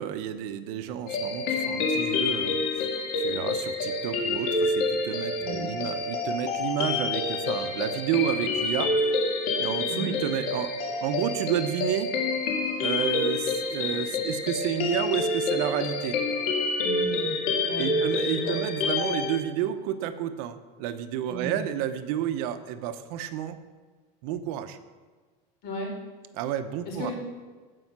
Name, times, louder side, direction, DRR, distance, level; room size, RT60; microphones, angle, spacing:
voice 1, 0.0-2.9 3.1-9.0 9.6-10.7 11.0-12.1 12.8-16.2 17.8-23.6 24.2-24.8 26.3-27.1, right 10 dB, 75° right, 10 dB, 0.9 m, -31 dB
sound 1, 1.1-19.4, left 3 dB, 75° left, 2.0 m, -28 dB
voice 2, 5.4-5.7 9.9-10.1 16.8-17.4 17.6-17.9 18.3-18.6 21.3-21.6 25.6-25.9 26.8-27.1, equal, 55° left, -1 dB, 4.0 m, -35 dB
15.5 x 5.4 x 6.0 m, 1.4 s
cardioid pair, 160°, 19 cm